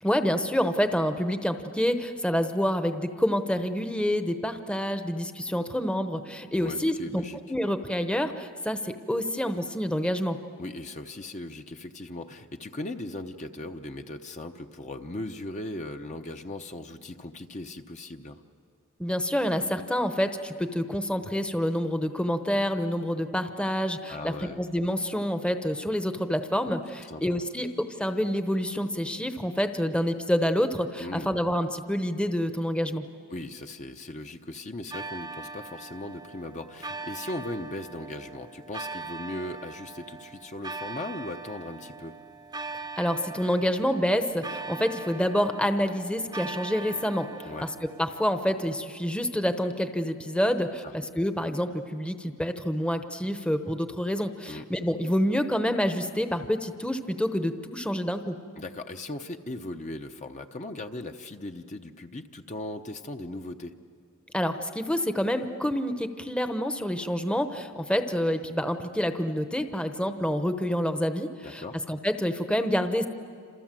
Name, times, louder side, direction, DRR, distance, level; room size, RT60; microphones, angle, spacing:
voice 1, 0.0-7.2 7.5-10.4 19.0-33.0 43.0-47.3 48.0-58.4 64.3-73.1, equal, 5° left, 8 dB, 0.9 m, -27 dB
voice 2, 6.5-7.4 10.6-18.4 24.1-24.6 27.1-27.4 31.0-31.3 33.3-42.1 47.4-47.7 50.8-50.9 54.5-54.6 58.6-63.7 71.4-71.8, left 2 dB, 35° left, 5 dB, 0.8 m, -38 dB
sound 1, 34.9-48.8, right 3 dB, 20° right, 0.8 m, -41 dB
28.5 x 27.5 x 7.6 m, 2.2 s
head